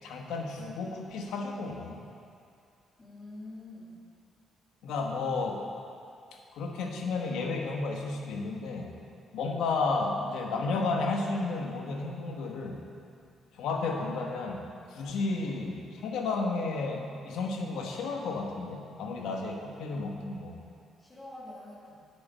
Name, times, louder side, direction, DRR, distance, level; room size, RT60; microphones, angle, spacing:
voice 1, 0.0-2.0 4.8-5.6 6.5-8.9 9.3-12.8 13.5-20.6, left 3 dB, 85° left, 2 dB, 1.2 m, -32 dB
voice 2, 3.0-4.0 21.0-22.0, left 1 dB, 25° left, -6 dB, 2.7 m, -45 dB
8.5 x 6.7 x 7.2 m, 2.5 s
cardioid pair, 90°, 0 cm